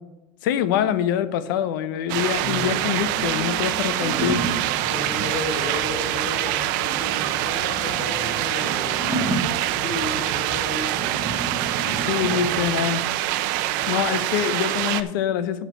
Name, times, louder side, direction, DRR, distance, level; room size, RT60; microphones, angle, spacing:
voice 1, 0.4-4.4 11.9-13.0 13.9-15.7, left 10 dB, 85° left, 13 dB, 0.7 m, -25 dB
sound 1, 2.1-15.0, right 14 dB, 65° right, 0.6 m, -25 dB
sound 2, 2.4-14.5, right 4 dB, 90° right, 1.3 m, -41 dB
sound 3, 3.0-12.8, right 2 dB, 20° right, 0.9 m, -33 dB
voice 2, 4.9-9.0 9.8-11.3 11.9-12.4, left 3 dB, 50° left, 1 dB, 3.6 m, -34 dB
10.0 x 4.8 x 6.9 m, 1.0 s
cardioid pair, 160°, 11 cm